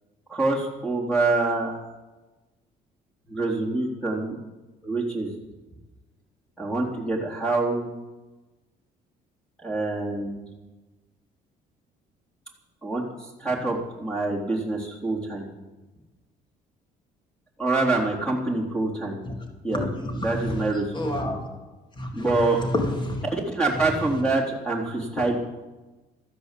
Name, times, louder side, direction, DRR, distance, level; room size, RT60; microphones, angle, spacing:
voice 1, 0.3-1.8 3.3-4.3 4.8-5.3 6.6-7.9 9.6-10.4 12.8-15.5 17.6-19.2 19.6-19.9 20.1-21.3 22.1-22.6 23.5-25.4, right 2 dB, 5° left, -2 dB, 3.5 m, -26 dB
voice 2, 19.7-20.7 20.9-21.5 22.0-23.2 23.8-24.2 25.1-25.3, left 1 dB, 25° left, 2 dB, 3.2 m, -30 dB
14.0 x 10.0 x 8.3 m, 1.1 s
cardioid pair, 110°, 17 cm